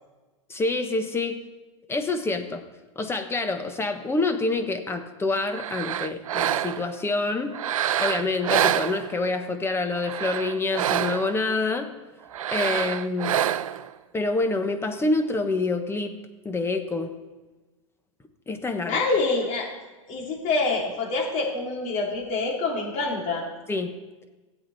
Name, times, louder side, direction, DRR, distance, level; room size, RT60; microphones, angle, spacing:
voice 1, 0.5-1.3 1.9-2.6 2.9-7.5 8.0-11.9 12.5-13.4 14.1-16.1 16.4-17.1 18.5-19.0 23.7-23.9, left 3 dB, 15° left, 7 dB, 1.2 m, -27 dB
sound 1, 5.5-7.0 7.5-9.4 9.9-11.4 12.3-13.9, right 10 dB, 85° right, 0.5 m, -27 dB
voice 2, 18.8-19.8 20.1-23.4, left 3 dB, 45° left, -1 dB, 3.4 m, -26 dB
16.0 x 8.3 x 4.1 m, 1.2 s
hypercardioid pair, 105°, 17 cm